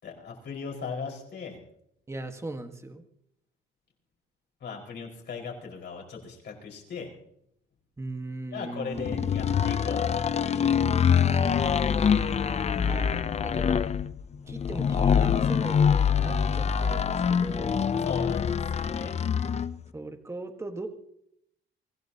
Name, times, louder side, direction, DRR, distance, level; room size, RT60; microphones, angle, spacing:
voice 1, 0.0-1.6 4.6-7.1 8.5-10.1 10.5-10.8 18.0-19.2, left 5 dB, 55° left, 0 dB, 5.1 m, -38 dB
voice 2, 2.1-3.0 8.0-9.5 11.9-13.9 14.5-18.0 19.9-20.9, right 2 dB, 15° right, 6 dB, 1.5 m, -39 dB
sound 1, 9.0-19.8, left 7 dB, 30° left, 0.5 m, -25 dB
25.0 x 15.5 x 2.9 m, 0.73 s
cardioid pair, 125°, 21 cm